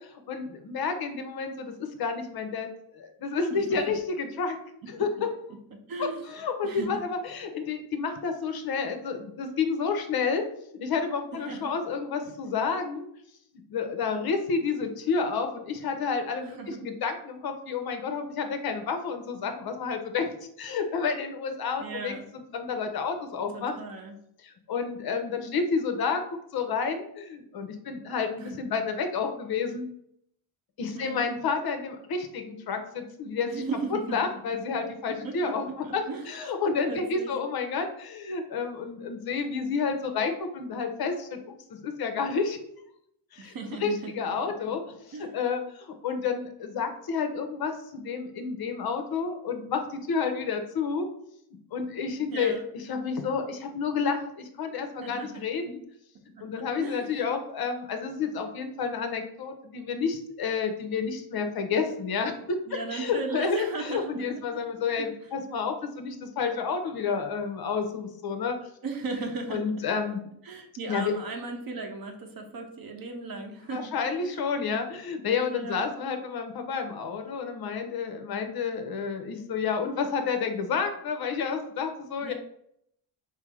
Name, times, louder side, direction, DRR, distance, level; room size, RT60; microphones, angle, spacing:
voice 1, 0.3-2.7 2.9-4.6 4.9-5.3 6.0-10.4 10.8-13.1 13.7-20.3 20.6-23.8 24.4-26.2 26.5-29.9 30.8-33.5 34.1-42.8 43.3-43.5 43.8-51.1 51.7-55.8 56.4-62.6 62.9-68.6 69.5-70.2 70.9-71.1 73.7-82.3, left 5 dB, 50° left, 6 dB, 0.7 m, -30 dB
voice 2, 5.9-6.2 6.6-7.0 11.5-11.7 16.4-16.8 21.8-22.3 23.5-24.1 28.4-28.6 30.9-31.3 33.5-34.2 34.9-36.3 36.9-37.3 43.4-44.1 44.4-44.7 45.1-45.3 52.3-52.7 55.0-55.4 56.3-57.0 62.7-64.6 65.0-65.1 68.8-69.6 70.4-73.9 74.2-74.3 75.4-75.9 82.2-82.3, right 4 dB, 45° right, 4 dB, 0.8 m, -37 dB
4.3 x 2.0 x 4.6 m, 0.72 s
cardioid pair, 115°, 48 cm